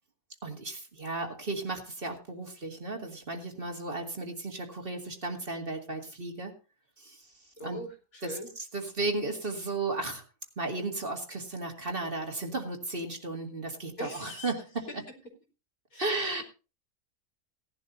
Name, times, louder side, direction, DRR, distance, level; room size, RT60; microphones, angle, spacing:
voice 1, 0.4-6.5 7.0-7.3 7.6-7.8 8.2-10.2 10.6-14.9 16.0-16.4, right 2 dB, 40° right, 2 dB, 2.3 m, -34 dB
voice 2, 7.6-8.5 14.0-14.5 14.9-15.0 15.9-16.4, equal, 70° left, 2 dB, 3.5 m, -41 dB
18.0 x 11.5 x 2.7 m, 0.32 s
omnidirectional pair, 1.5 m